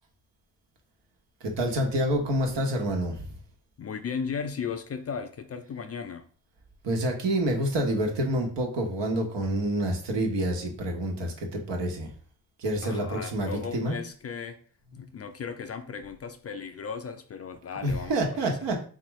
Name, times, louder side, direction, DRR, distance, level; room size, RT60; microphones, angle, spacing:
voice 1, 1.4-3.2 6.8-12.1 12.6-14.0 15.0-15.1 17.8-18.8, right 1 dB, 65° right, 1.2 m, -28 dB
voice 2, 3.8-6.3 12.8-14.6 14.9-18.6, left 6 dB, 35° left, 0.4 m, -36 dB
3.6 x 2.9 x 3.1 m
supercardioid pair, 55°, 45 cm